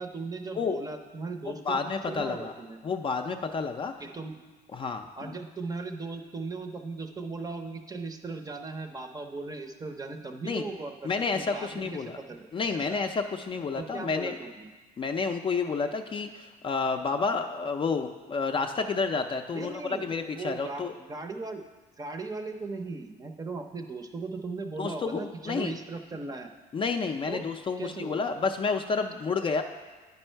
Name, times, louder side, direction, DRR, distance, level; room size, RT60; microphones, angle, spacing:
voice 1, 0.0-1.6 2.1-2.8 4.0-4.4 5.2-12.4 12.7-13.0 13.7-14.7 19.5-21.6 22.0-26.5 27.3-27.4 27.8-28.3, right 3 dB, 20° right, 6 dB, 0.6 m, -38 dB
voice 2, 1.5-2.5 2.8-3.9 4.7-5.3 10.4-10.6 11.0-12.2 12.5-14.4 15.0-20.9 24.8-25.7 26.7-29.6, left 4 dB, 30° left, 5 dB, 0.4 m, -30 dB
9.5 x 5.4 x 4.4 m, 1.3 s
cardioid pair, 110°, 17 cm